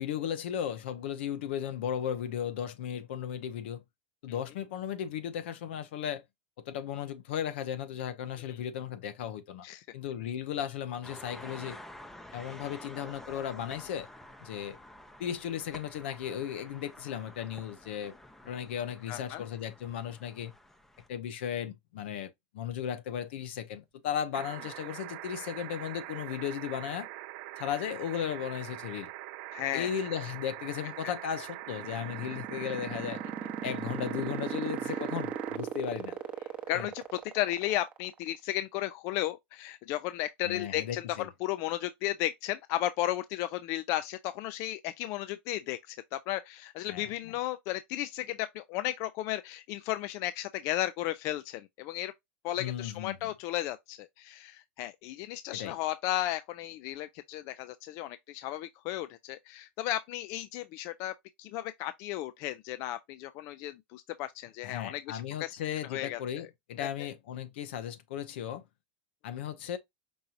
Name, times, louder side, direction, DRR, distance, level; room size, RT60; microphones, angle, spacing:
voice 1, 0.0-3.8 4.2-6.2 6.6-9.7 9.9-11.8 12.3-14.1 14.4-14.8 15.2-18.1 18.4-20.5 21.1-27.1 27.6-29.1 29.7-33.2 33.6-36.2 36.7-36.9 40.4-41.3 46.9-47.1 52.6-53.2 55.5-55.8 64.6-68.6 69.2-69.8, left 9 dB, 85° left, 0.8 m, -36 dB
sound 1, 11.0-21.1, left 1 dB, 5° left, 0.5 m, -50 dB
voice 2, 19.1-19.4 29.5-29.9 31.0-31.1 36.7-52.1 52.4-65.5 65.8-66.5 66.8-66.9, left 14 dB, 50° left, 0.4 m, -34 dB
sound 2, 24.3-35.6 37.0-37.1, right 17 dB, 60° right, 0.4 m, -43 dB
sound 3, 31.6-38.2, right 8 dB, 25° right, 0.7 m, -35 dB
5.3 x 2.9 x 2.5 m
supercardioid pair, 135°, 6 cm